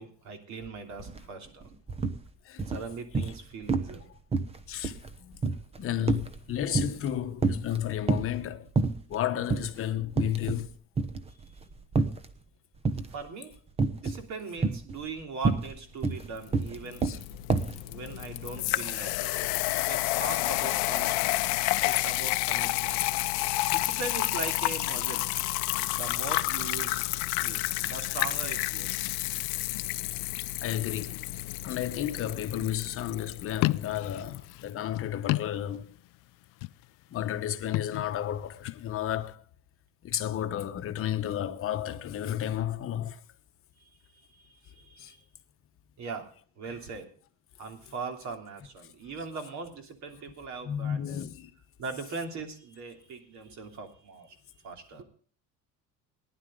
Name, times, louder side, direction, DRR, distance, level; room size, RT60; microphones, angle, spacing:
voice 1, 0.0-1.6 2.6-4.0 13.1-13.6 13.9-17.1 17.9-19.3 19.8-21.4 21.8-23.0 23.7-25.3 25.8-29.1 43.8-43.9 44.3-45.2 46.0-46.3 46.6-47.1 47.6-51.2 51.8-54.3 54.6-55.0, right 4 dB, 50° right, 3.1 m, -40 dB
sound 1, 1.0-1.2 1.5-2.2 2.6-3.4 3.7-4.0 4.3-7.1 7.4-8.4 8.8-9.2 9.5-9.7 10.1-10.7 11.0-12.3 12.8-13.3 13.8-14.2 14.6-17.8, right 4 dB, 15° right, 0.9 m, -28 dB
voice 2, 4.7-5.4 5.8-8.7 9.1-10.8 14.0-14.1 17.0-17.2 19.8-20.0 29.3-29.4 30.6-31.3 31.6-35.9 37.1-39.4 40.0-43.2 45.0-45.1 50.6-51.5, left 11 dB, 35° left, 1.1 m, -32 dB
sound 2, 16.4-34.4, left 20 dB, 90° left, 0.8 m, -30 dB
sound 3, 33.5-36.2 36.4-37.0 37.6-38.9, left 19 dB, 65° left, 0.5 m, -32 dB
18.5 x 11.0 x 3.8 m
cardioid pair, 155°, 36 cm